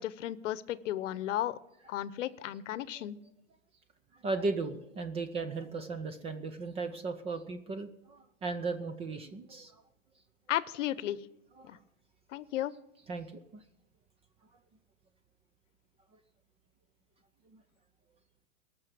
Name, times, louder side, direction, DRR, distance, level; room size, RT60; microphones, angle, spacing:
voice 1, 0.0-1.6 1.9-3.2 10.5-11.2 11.6-11.8 12.3-12.7, left 13 dB, 75° left, 17 dB, 0.9 m, -34 dB
voice 2, 4.1-9.8 11.6-11.8 13.1-13.6 17.5-17.6, right 3 dB, 15° right, 9 dB, 0.5 m, -36 dB
18.5 x 6.7 x 7.5 m, 0.90 s
supercardioid pair, 145°, 37 cm